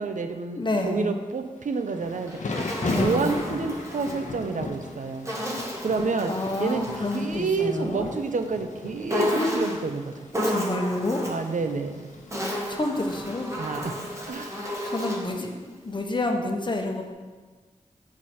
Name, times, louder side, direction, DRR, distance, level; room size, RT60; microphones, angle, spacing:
voice 1, 0.0-2.4 2.8-5.3 5.8-6.3 6.6-10.2 11.3-12.1 13.6-14.8, right 4 dB, 85° right, 7 dB, 0.5 m, -29 dB
voice 2, 0.6-1.0 2.9-3.3 6.3-8.1 9.4-9.6 10.4-11.3 12.7-13.5 14.8-17.1, left 2 dB, 40° left, 2 dB, 0.9 m, -29 dB
Thunder / Rain, 1.7-14.7, left 3 dB, 75° left, 0.7 m, -37 dB
Insect, 2.0-4.2 5.3-7.3 9.1-9.9 10.3-11.5 12.1-15.4, left 1 dB, 25° right, 1.3 m, -32 dB
7.3 x 4.8 x 4.3 m, 1.4 s
wide cardioid pair, 90°, 13 cm